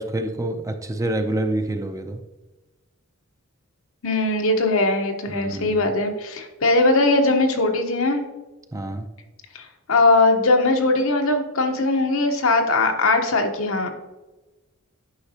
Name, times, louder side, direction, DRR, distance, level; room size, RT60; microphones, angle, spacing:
voice 1, 0.0-2.2 5.3-5.7 8.7-9.1, right 1 dB, 15° right, 6 dB, 0.5 m, -27 dB
voice 2, 4.0-8.2 9.5-13.9, left 2 dB, 70° left, 4 dB, 1.0 m, -20 dB
9.8 x 5.8 x 2.9 m, 1.1 s
head